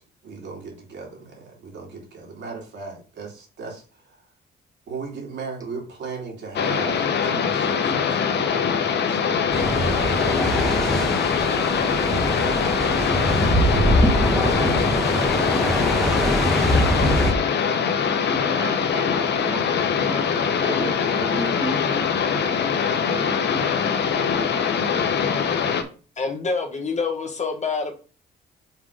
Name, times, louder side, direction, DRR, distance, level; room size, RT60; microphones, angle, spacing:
voice 1, 0.2-4.2 4.9-13.6, right 4 dB, 65° right, 2.9 m, -38 dB
sound 1, 6.6-25.8, left 6 dB, 60° left, 1.0 m, -23 dB
sound 2, 9.5-17.3, equal, ahead, 1.3 m, -22 dB
voice 2, 18.2-22.1 22.4-25.2, right 1 dB, 15° right, 2.1 m, -34 dB
voice 3, 26.2-27.9, left 4 dB, 35° left, 1.2 m, -26 dB
5.9 x 3.7 x 4.9 m
cardioid pair, 90°, 20 cm